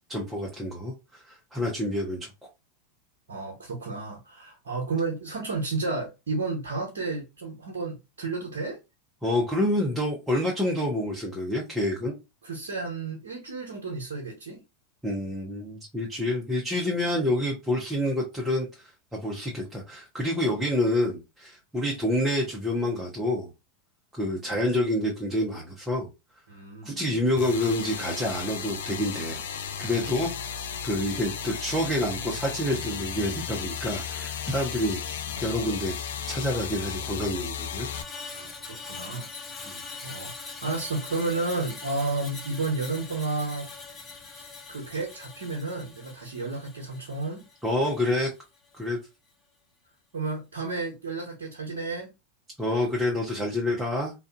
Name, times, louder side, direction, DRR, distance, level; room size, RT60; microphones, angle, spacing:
voice 1, 0.1-0.9 1.3-2.3 9.2-12.1 15.0-18.7 19.1-23.5 24.1-26.1 26.8-29.4 29.8-30.3 30.8-36.0 36.3-37.9 39.7-39.8 47.6-48.3 48.7-49.0 52.6-54.1, left 1 dB, 10° right, 0.9 m, -28 dB
voice 2, 3.3-8.8 12.4-14.6 26.5-26.9 38.3-39.3 40.0-43.7 44.3-47.4 50.1-52.1, right 3 dB, 75° right, 0.8 m, -32 dB
sound 1, 27.4-38.0, left 7 dB, 70° left, 0.4 m, -34 dB
Screech, 37.9-48.2 48.6-48.8, left 4 dB, 25° left, 0.8 m, -42 dB
2.5 x 2.4 x 2.4 m
hypercardioid pair, 90°, 0 cm